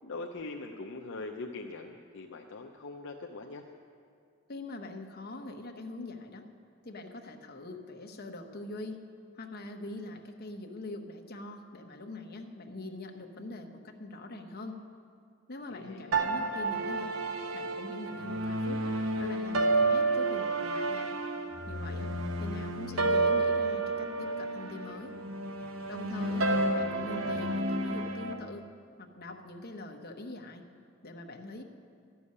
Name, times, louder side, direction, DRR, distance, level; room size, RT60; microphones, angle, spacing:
voice 1, 0.0-3.7 15.7-16.2 26.1-26.4, left 3 dB, 65° left, 2 dB, 0.6 m, -42 dB
voice 2, 4.5-6.5 6.8-9.0 9.3-14.8 15.5-17.1 17.5-18.9 19.2-21.1 21.7-22.1 22.4-25.1 25.9-26.5 26.7-28.7 29.0-30.7 31.0-31.6, left 2 dB, 50° left, 4 dB, 1.0 m, -43 dB
sound 1, 16.1-28.3, right 2 dB, 80° right, 1.0 m, -30 dB
12.5 x 7.0 x 9.7 m, 2.4 s
head